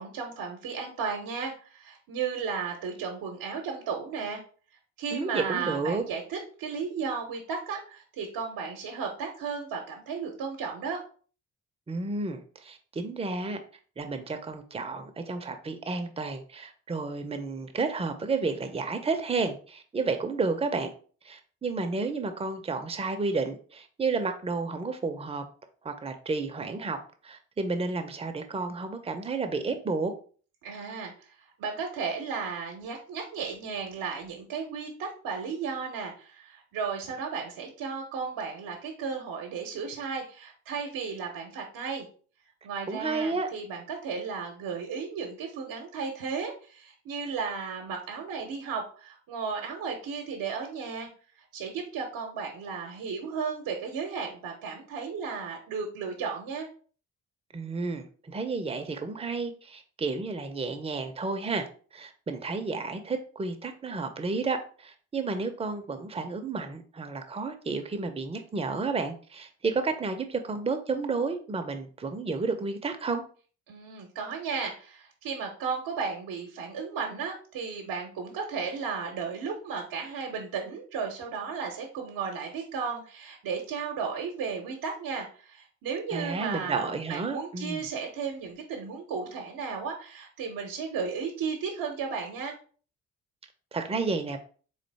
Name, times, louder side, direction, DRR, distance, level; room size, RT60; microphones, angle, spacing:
voice 1, 0.0-4.4 5.0-11.0 30.6-31.1 31.6-42.1 42.6-51.1 51.5-56.7 73.7-92.5, right 5 dB, 60° right, 3 dB, 0.9 m, -34 dB
voice 2, 5.1-6.0 11.9-13.6 14.0-20.9 21.2-25.4 25.8-27.0 27.2-30.1 42.9-43.5 57.5-61.7 61.9-73.2 86.1-87.9 93.7-94.4, right 4 dB, 15° right, 6 dB, 0.7 m, -31 dB
3.8 x 3.2 x 3.3 m, 0.41 s
hypercardioid pair, 45°, 41 cm